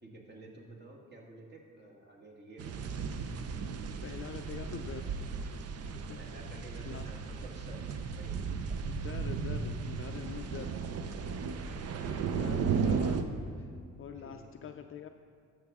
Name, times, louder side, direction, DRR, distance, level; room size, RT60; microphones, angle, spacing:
voice 1, 0.0-3.1 6.2-7.8 8.1-8.3 14.2-14.3, right 2 dB, 35° right, -2 dB, 1.7 m, -51 dB
sound 1, 2.6-13.2, right 5 dB, 55° right, 0.6 m, -35 dB
voice 2, 4.0-5.1 5.9-6.2 6.8-7.1 8.9-10.8 12.3-13.3 13.6-13.7 14.0-15.1, left 8 dB, 45° left, 6 dB, 0.5 m, -44 dB
13.0 x 6.1 x 3.6 m, 2.2 s
cardioid pair, 90°, 30 cm